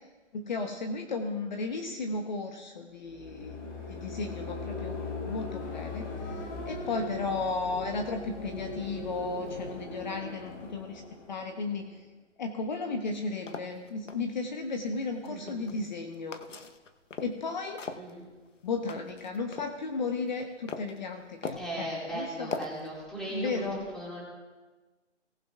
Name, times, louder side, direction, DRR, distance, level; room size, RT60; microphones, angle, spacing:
voice 1, 0.3-3.6 3.9-5.0 5.2-11.0 11.3-12.0 12.4-16.4 17.2-17.8 18.6-22.5 23.3-23.8, left 3 dB, 40° left, 4 dB, 1.0 m, -34 dB
sound 1, 3.0-12.0, left 2 dB, 15° left, 1.2 m, -39 dB
sound 2, 13.1-14.2 15.1-15.9 16.3-17.4 17.8-19.7 20.2-21.0 21.4-21.8 22.5-22.9, left 4 dB, 90° left, 1.1 m, -40 dB
voice 2, 15.2-15.7 18.0-18.3 21.6-24.2, right 1 dB, ahead, -5 dB, 2.1 m, -38 dB
19.0 x 11.5 x 2.4 m, 1.3 s
hypercardioid pair, 155°, 36 cm